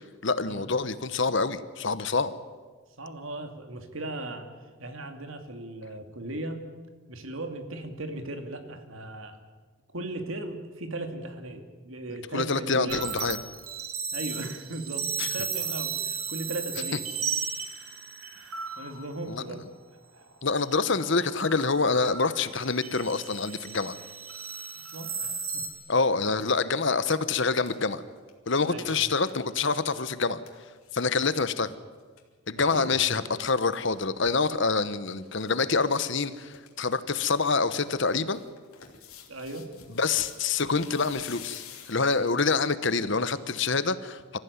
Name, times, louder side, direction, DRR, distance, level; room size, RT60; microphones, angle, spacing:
voice 1, 0.2-2.3 12.3-13.4 15.2-15.3 19.3-19.4 20.4-23.9 25.9-28.0 28.5-30.4 30.9-31.7 32.5-38.4 40.0-44.4, left 4 dB, 55° left, 14 dB, 1.1 m, -26 dB
voice 2, 3.0-4.5 4.8-6.6 7.1-9.4 9.9-13.0 14.1-17.0 18.3-19.6 21.0-21.1 24.8-25.6 28.7-29.1 32.7-33.1 39.3-39.7, right 2 dB, 65° right, 6 dB, 2.6 m, -37 dB
sound 1, 12.9-19.3 20.2-20.6 20.9-25.7, right 6 dB, 90° right, 3.4 m, -35 dB
sound 2, 26.5-26.8 27.2-31.4 31.7-31.8 32.0-32.3 33.5-34.4 35.0-35.5 35.8-35.9 36.2-36.9 37.2-42.4 43.0-43.1, left 8 dB, 85° left, 3.0 m, -50 dB
26.0 x 15.0 x 9.6 m, 1.4 s
head